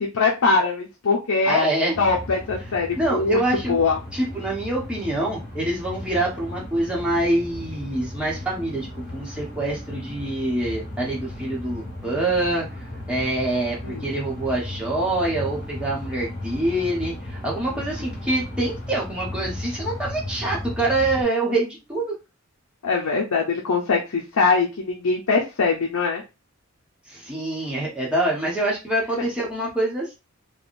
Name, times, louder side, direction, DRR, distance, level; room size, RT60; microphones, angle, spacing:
voice 1, 0.1-1.6 2.0-3.4 3.7-4.0 13.8-14.0 22.8-26.2, left 4 dB, 80° left, -1 dB, 0.6 m, -22 dB
voice 2, 1.5-2.0 3.0-3.7 4.1-12.7 13.1-22.1 27.1-30.1, right 1 dB, 5° right, -5 dB, 1.0 m, -25 dB
sound 1, 1.9-21.2, left 1 dB, 30° left, 1.6 m, -35 dB
3.4 x 2.2 x 2.5 m, 0.27 s
head